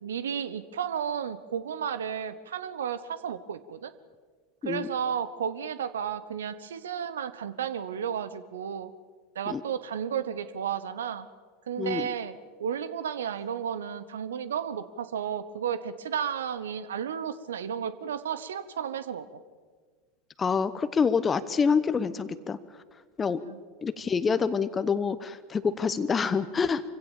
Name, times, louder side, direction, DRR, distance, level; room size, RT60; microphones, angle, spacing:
voice 1, 0.0-3.9 4.6-8.9 9.3-11.3 11.7-19.4 23.4-23.6, right 8 dB, 70° right, 15 dB, 0.9 m, -33 dB
voice 2, 11.8-12.1 20.4-22.6 23.2-23.4 23.8-26.8, left 5 dB, 20° left, 13 dB, 0.9 m, -26 dB
25.0 x 16.5 x 7.2 m, 1.5 s
figure-of-eight pair, 85°, 0 cm